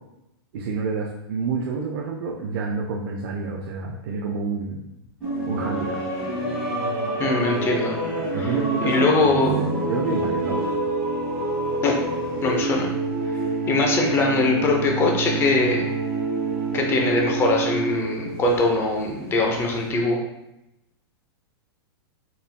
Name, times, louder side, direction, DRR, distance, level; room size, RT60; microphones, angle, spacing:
voice 1, 0.5-4.8 5.5-6.0 8.3-10.6, right 4 dB, 55° right, 0 dB, 0.5 m, -28 dB
sound 1, 5.2-19.9, right 2 dB, 5° right, 1.4 m, -27 dB
voice 2, 7.2-8.0 8.3-8.5 8.8-9.6 11.8-11.9 12.4-12.9 13.7-15.9 16.7-20.2, left 2 dB, 15° left, 1 dB, 0.6 m, -22 dB
4.2 x 3.3 x 2.2 m, 0.89 s
supercardioid pair, 150°, 14 cm